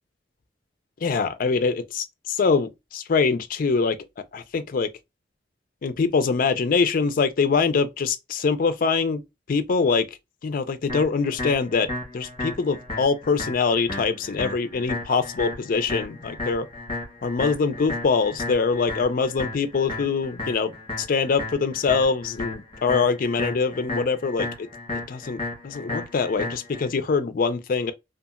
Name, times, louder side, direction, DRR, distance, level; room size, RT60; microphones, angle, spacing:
voice 1, 1.0-4.0 4.3-4.9 5.8-9.2 9.5-10.1 10.4-11.9 12.1-16.7 17.2-24.7 25.1-27.9, left 5 dB, 50° left, 0.4 m, -24 dB
sound 1, 10.9-26.9, left 2 dB, 30° left, 1.1 m, -34 dB
2.8 x 2.4 x 2.4 m
head